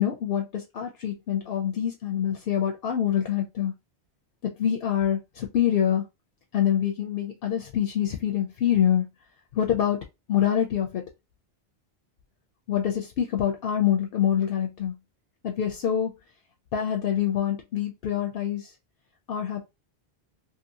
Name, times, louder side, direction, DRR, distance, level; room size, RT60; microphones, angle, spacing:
voice 1, 0.0-3.7 4.6-6.0 6.5-9.1 9.5-10.0 10.3-11.0 12.7-14.9 15.4-16.1 16.7-18.7 19.3-19.6, left 10 dB, 70° left, 0.7 m, -25 dB
2.8 x 2.7 x 2.7 m
omnidirectional pair, 1.0 m